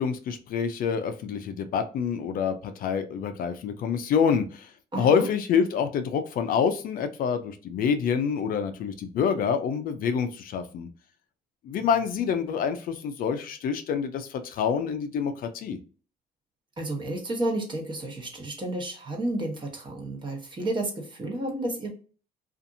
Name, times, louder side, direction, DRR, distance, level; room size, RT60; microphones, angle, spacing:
voice 1, 0.0-10.9 11.6-15.8, left 7 dB, 55° left, 8 dB, 0.4 m, -27 dB
voice 2, 4.9-5.3 16.8-21.9, right 1 dB, 30° right, 1 dB, 1.1 m, -31 dB
2.6 x 2.5 x 2.6 m, 0.38 s
cardioid pair, 110°, 17 cm